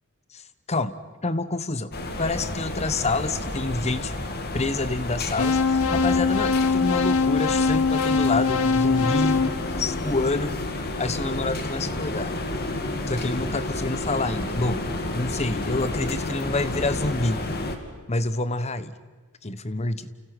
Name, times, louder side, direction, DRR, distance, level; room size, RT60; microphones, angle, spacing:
voice 1, 1.2-1.9 2.2-4.1 4.5-9.5 9.8-10.5 11.0-12.3 13.1-14.8 15.1-17.4 18.1-18.9 19.4-20.1, left 2 dB, 30° left, 13 dB, 1.1 m, -27 dB
sound 1, 1.9-17.8, left 1 dB, 45° left, 2.5 m, -31 dB
sound 2, 5.4-10.5, left 4 dB, 70° left, 0.9 m, -23 dB
30.0 x 29.5 x 6.1 m, 1.4 s
head